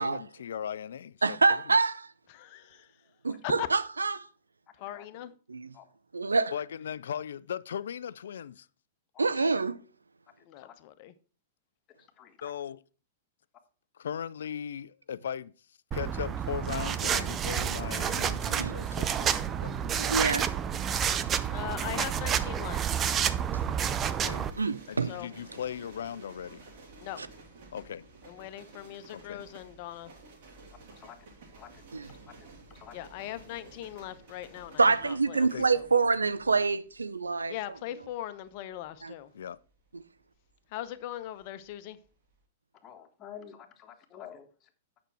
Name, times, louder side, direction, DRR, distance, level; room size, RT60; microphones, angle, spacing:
voice 1, 0.0-1.4 1.7-1.8 6.5-8.7 12.4-12.8 14.0-15.5 15.9-19.7 24.2-24.5 24.9-26.6 27.7-28.1 29.1-29.4 35.4-35.7 39.3-39.6, left 9 dB, 65° left, 0.4 m, -38 dB
voice 2, 1.2-2.1 3.2-4.3 5.5-5.7 6.1-6.5 9.2-9.8 18.2-18.3 18.6-18.7 20.0-20.5 24.6-25.2 27.2-27.3 31.9-32.1 34.8-37.5 39.0-39.1 39.9-40.0, right 4 dB, 85° right, 0.5 m, -26 dB
voice 3, 2.3-2.9 3.4-3.7 4.8-5.3 9.3-9.6 10.5-11.1 21.5-22.8 25.1-25.3 27.0-27.2 28.3-30.1 32.9-35.4 35.7-35.8 37.5-39.3 40.7-42.0, left 13 dB, 50° left, 0.8 m, -40 dB
voice 4, 4.7-5.1 5.7-5.9 9.1-9.3 10.4-10.7 11.9-12.4 30.9-31.3 31.6-32.5 32.7-33.1 42.7-44.7, left 9 dB, 30° left, 1.5 m, -50 dB
sound 1, 15.9-24.5, right 8 dB, 25° right, 0.6 m, -29 dB
sound 2, 24.5-41.7 42.0-42.4, right 3 dB, 60° right, 3.6 m, -53 dB
9.0 x 6.2 x 4.6 m
figure-of-eight pair, 100°, 0 cm